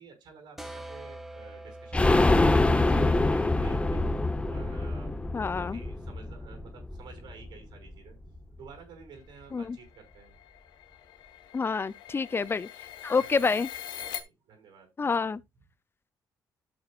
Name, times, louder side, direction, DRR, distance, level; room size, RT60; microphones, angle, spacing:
voice 1, 0.0-4.0 4.5-8.2 8.6-10.4 13.2-13.6 14.0-14.9, right 5 dB, 75° right, 5.6 m, -51 dB
sound 1, 0.6-6.0, right 1 dB, 5° right, 1.7 m, -47 dB
sound 2, 1.9-7.6 7.9-8.0 8.3-8.4, left 2 dB, 15° left, 1.0 m, -25 dB
voice 2, 5.3-5.8 9.5-9.8 11.5-12.7 13.0-13.7 15.0-15.4, left 4 dB, 30° left, 0.5 m, -28 dB
sound 3, 9.4-14.2, left 11 dB, 85° left, 1.3 m, -43 dB
12.5 x 6.7 x 2.5 m
cardioid pair, 85°, 8 cm